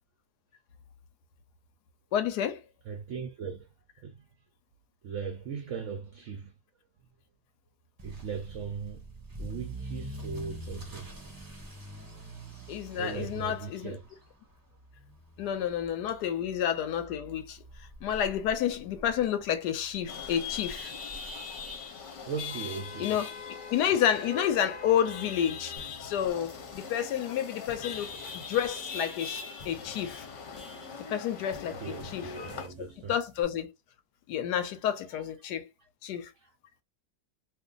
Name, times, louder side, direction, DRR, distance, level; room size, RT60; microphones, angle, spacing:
voice 1, 2.1-2.6 12.7-14.0 15.4-17.6 18.0-20.9 23.0-23.3 23.7-25.7 26.0-30.3 31.1-32.3 33.1-33.7 34.3-35.7 36.0-36.3, left 9 dB, 80° left, 1.2 m, -30 dB
voice 2, 2.8-3.7 4.0-4.3 5.0-6.5 8.0-9.0 9.4-11.1 12.9-14.1 15.4-15.7 16.1-16.2 22.3-23.2 31.7-33.2 35.1-35.2 35.8-35.9 36.4-36.5, right 6 dB, 70° right, 0.7 m, -39 dB
Motor vehicle (road) / Accelerating revving vroom, 8.0-22.8 23.1-23.5 24.0-24.1 24.4-24.5 24.8-24.9 26.2-26.3, right 1 dB, 20° right, 0.5 m, -46 dB
Chatter / Vehicle horn car horn honking / Traffic noise roadway noise, 20.1-32.7, left 5 dB, 55° left, 1.0 m, -41 dB
sound 1, 25.8-33.4, left 1 dB, 35° left, 0.7 m, -53 dB
2.6 x 2.6 x 3.7 m
omnidirectional pair, 1.8 m